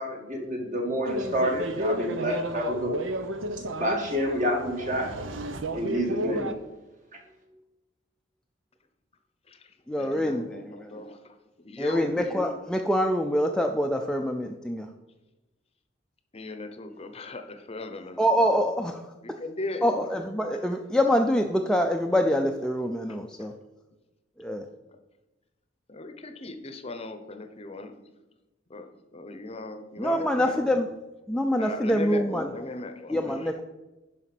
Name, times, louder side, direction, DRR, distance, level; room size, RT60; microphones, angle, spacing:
voice 1, 0.0-2.9 3.8-5.1 5.7-6.5, equal, 45° right, 1 dB, 2.0 m, -28 dB
sound 1, 1.1-6.5, right 1 dB, 85° right, 0.8 m, -32 dB
voice 2, 6.2-6.5 9.9-11.0 11.8-14.9 18.2-19.0 19.3-19.4 19.8-23.5 24.4-24.6 30.0-30.9 31.3-32.5 33.1-33.6, equal, 5° left, 3 dB, 0.4 m, -25 dB
voice 3, 9.5-11.3 11.6-12.2 16.3-18.2 19.2-20.0 24.9-25.0 25.9-28.0 28.7-30.6 31.6-33.5, left 2 dB, 30° left, 8 dB, 0.7 m, -38 dB
11.5 x 5.0 x 5.9 m, 1.1 s
head